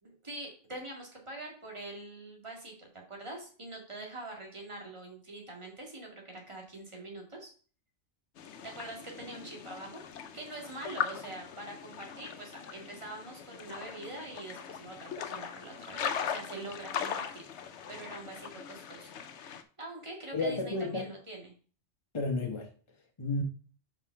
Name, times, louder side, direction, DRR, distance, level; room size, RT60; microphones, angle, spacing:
voice 1, 0.0-7.5 8.6-10.0 10.3-17.4 17.9-19.1 19.4-21.5, right 2 dB, 25° right, 2.1 m, -44 dB
sound 1, 8.4-19.6, left 8 dB, 70° left, 1.0 m, -40 dB
voice 2, 20.3-21.1 22.1-22.7 23.2-23.4, left 2 dB, 25° left, 0.9 m, -31 dB
5.6 x 4.7 x 5.7 m
omnidirectional pair, 1.2 m